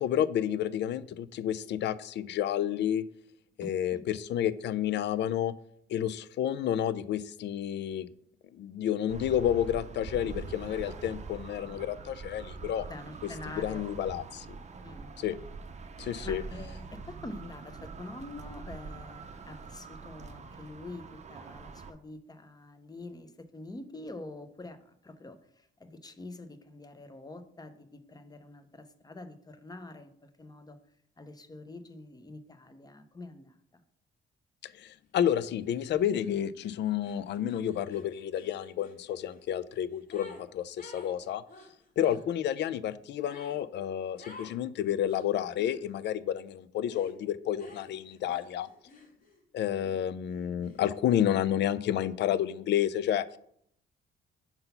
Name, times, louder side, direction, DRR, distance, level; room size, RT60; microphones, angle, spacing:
voice 1, 0.0-3.0 3.6-5.5 5.9-8.1 8.5-12.9 13.6-14.5 15.2-15.4 16.0-16.4 34.6-41.4 42.0-48.7 49.5-53.4, left 10 dB, 60° left, 16 dB, 0.4 m, -30 dB
voice 2, 3.6-4.0 12.9-13.9 14.8-15.1 16.2-30.8 31.2-33.8 42.1-42.2, left 2 dB, 20° left, 9 dB, 0.7 m, -46 dB
sound 1, 9.1-21.9, right 4 dB, 35° right, 0.6 m, -44 dB
sound 2, 35.3-35.5 35.7-40.4 40.7-42.2 43.2-43.6 44.2-44.6 45.0-45.8 46.9-47.2 47.6-49.4 49.8-51.2, left 3 dB, 45° left, 1.9 m, -53 dB
5.6 x 3.8 x 5.7 m, 0.69 s
cardioid pair, 90°, 20 cm